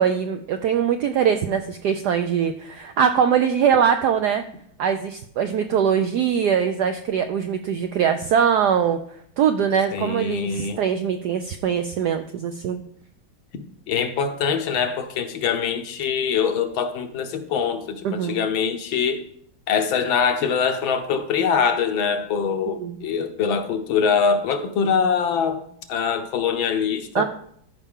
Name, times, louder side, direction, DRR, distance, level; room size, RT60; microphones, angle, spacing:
voice 1, 0.0-4.4 4.8-12.8 18.0-18.4 22.7-23.0 27.1-27.2, right 8 dB, 80° right, 0.9 m, -22 dB
voice 2, 9.9-10.8 13.9-19.2 19.7-25.6 25.9-27.2, left 6 dB, 75° left, 1.6 m, -23 dB
13.0 x 5.5 x 3.6 m
omnidirectional pair, 2.3 m